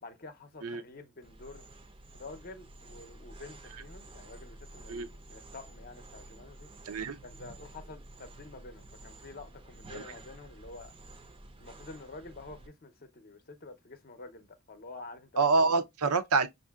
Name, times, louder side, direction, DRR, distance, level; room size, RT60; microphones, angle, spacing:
voice 1, 0.0-1.6 2.1-6.7 7.2-10.9 11.6-15.4, left 3 dB, 40° left, 0.6 m, -48 dB
sound 1, 1.2-12.7, right 2 dB, 25° right, 0.5 m, -51 dB
voice 2, 6.8-7.2 9.9-10.0 15.4-16.5, right 3 dB, 80° right, 0.6 m, -26 dB
6.3 x 2.5 x 2.3 m
head